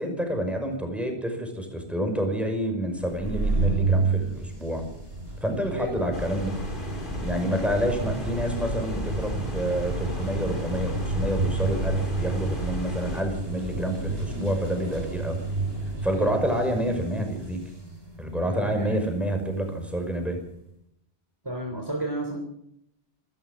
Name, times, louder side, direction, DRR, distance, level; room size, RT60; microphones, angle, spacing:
voice 1, 0.0-4.8 5.4-6.6 7.2-15.4 16.0-17.6 18.2-20.4, equal, ahead, 4 dB, 5.7 m, -28 dB
sound 1, 3.0-20.4, right 3 dB, 65° right, 5.4 m, -31 dB
sound 2, 6.1-13.2, left 1 dB, 50° left, 4.1 m, -36 dB
voice 2, 18.5-19.0 21.4-22.4, right 1 dB, 20° right, 2 dB, 3.3 m, -33 dB
26.5 x 13.0 x 7.5 m, 0.75 s
omnidirectional pair, 1.1 m